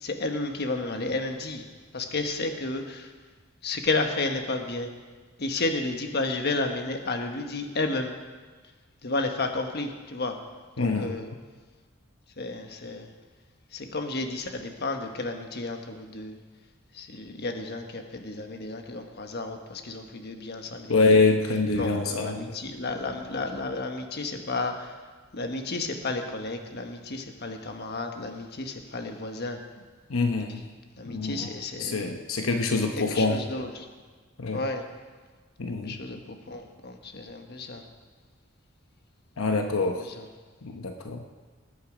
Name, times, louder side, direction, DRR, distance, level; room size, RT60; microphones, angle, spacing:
voice 1, 0.0-1.6 1.9-3.1 3.6-4.9 5.4-8.1 9.0-10.4 10.8-11.3 12.4-13.1 13.7-16.4 17.0-21.0 21.8-24.7 25.3-29.6 31.0-32.0 32.9-33.9 34.5-34.8 35.8-37.8 40.2-40.3, left 2 dB, 50° left, 5 dB, 1.3 m, -32 dB
voice 2, 10.8-11.1 20.9-22.5 30.1-30.7 31.1-31.5 31.8-33.4 34.4-34.6 35.6-36.0 39.4-40.1 40.6-41.2, left 3 dB, 80° left, 4 dB, 1.0 m, -25 dB
20.0 x 9.3 x 5.0 m, 1.4 s
head